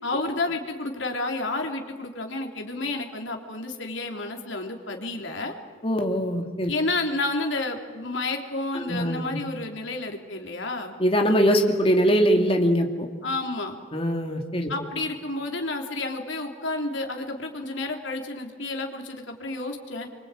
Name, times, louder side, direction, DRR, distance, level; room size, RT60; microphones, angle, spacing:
voice 1, 0.0-5.5 6.6-10.9 13.2-13.8 14.7-20.1, left 2 dB, 70° left, 3 dB, 3.3 m, -30 dB
voice 2, 5.8-6.7 8.7-9.4 11.0-13.1 13.9-14.7, equal, 30° left, 3 dB, 2.5 m, -22 dB
27.0 x 24.5 x 9.1 m, 1.5 s
head